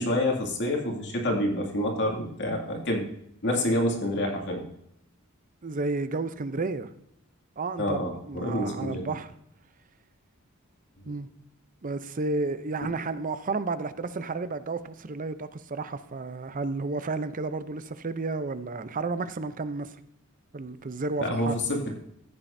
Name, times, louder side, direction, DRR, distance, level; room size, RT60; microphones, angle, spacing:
voice 1, 0.0-3.0 3.4-4.6 7.8-9.1 21.2-21.8, left 1 dB, 60° left, 2.3 m, -27 dB
voice 2, 5.6-6.9 7.6-9.3 11.1-11.3 11.8-20.0 20.5-21.5, right 3 dB, 40° right, 0.6 m, -32 dB
15.0 x 9.1 x 2.7 m
head